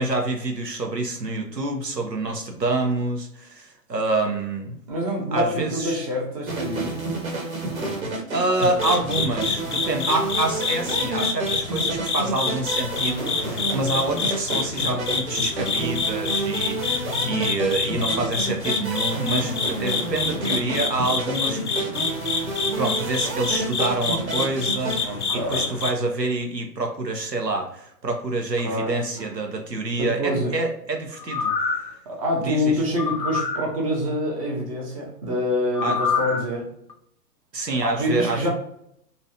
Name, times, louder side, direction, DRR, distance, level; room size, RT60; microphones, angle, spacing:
voice 1, 0.0-4.8 5.3-6.0 8.3-21.9 22.7-31.5 32.4-32.8 35.8-36.0 37.5-38.5, right 2 dB, 90° right, 2 dB, 0.8 m, -27 dB
voice 2, 4.9-7.1 25.0-25.7 28.6-28.9 29.2-29.3 30.0-30.5 32.1-36.7 37.8-38.5, left 1 dB, 20° right, -2 dB, 0.7 m, -26 dB
sound 1, 6.5-25.0, right 2 dB, 55° right, 1.2 m, -30 dB
sound 2, 8.6-25.9, left 5 dB, 50° left, 0.5 m, -28 dB
sound 3, 31.2-31.9 33.0-33.6 35.7-36.4 36.9-37.0, left 5 dB, 85° left, 0.8 m, -25 dB
3.0 x 2.8 x 2.7 m, 0.72 s
figure-of-eight pair, 120°, 48 cm